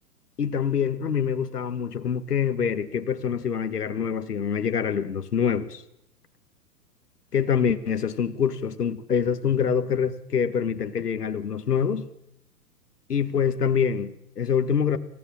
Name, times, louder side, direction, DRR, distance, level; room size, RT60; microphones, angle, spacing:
voice 1, 0.4-5.8 7.3-12.1 13.1-15.0, left 7 dB, 70° left, 1.8 m, -25 dB
26.0 x 16.5 x 7.5 m
figure-of-eight pair, 115°, 49 cm